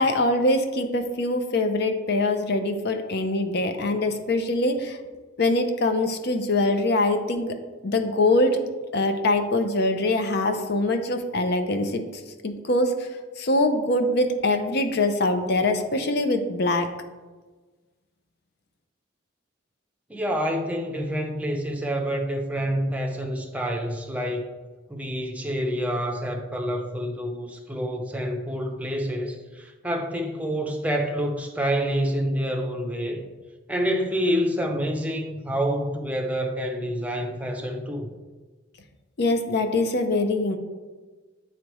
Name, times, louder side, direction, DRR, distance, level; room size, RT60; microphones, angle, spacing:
voice 1, 0.0-5.0 5.4-7.6 7.8-8.6 8.9-12.1 12.4-13.1 13.4-16.9 39.2-40.6, left 2 dB, 60° left, 0.6 m, -23 dB
voice 2, 20.1-24.5 24.9-33.2 33.7-38.1, equal, 5° right, 0.6 m, -27 dB
9.3 x 3.3 x 3.0 m
head